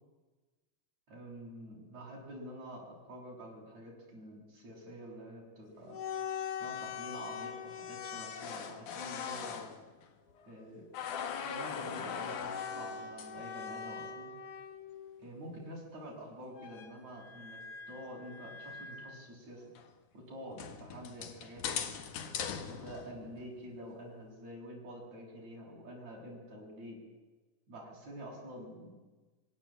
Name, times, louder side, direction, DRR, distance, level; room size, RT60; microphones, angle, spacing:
voice 1, 1.1-6.0 6.6-9.7 10.5-10.9 11.4-14.3 15.2-17.6 17.9-19.6 20.1-22.0 22.7-27.0 27.7-29.0, equal, 60° right, -2 dB, 8.8 m, -47 dB
sound 1, 5.8-10.6 10.9-15.2 16.6-19.2 19.8-19.9 20.5-23.5, left 7 dB, 80° left, 3.3 m, -41 dB
25.0 x 24.5 x 8.9 m, 1.2 s
omnidirectional pair, 3.5 m